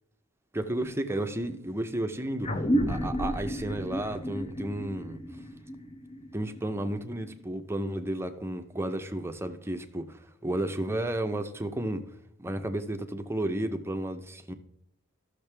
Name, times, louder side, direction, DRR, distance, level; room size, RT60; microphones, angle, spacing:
voice 1, 0.5-5.2 6.3-12.1 12.4-14.5, right 1 dB, 10° right, 6 dB, 0.7 m, -32 dB
sound 1, 2.4-7.3, equal, 30° left, 0.8 m, -32 dB
14.0 x 6.5 x 3.4 m, 0.76 s
head